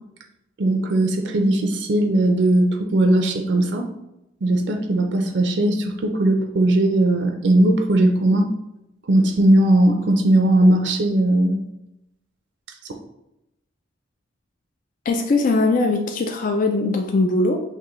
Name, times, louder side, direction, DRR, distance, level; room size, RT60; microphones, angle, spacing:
voice 1, 0.6-3.9 4.4-8.5 9.1-11.7, right 1 dB, 65° right, 4 dB, 0.5 m, -18 dB
voice 2, 15.1-17.6, left 3 dB, 45° left, 4 dB, 0.3 m, -20 dB
6.0 x 2.6 x 3.0 m, 0.89 s
head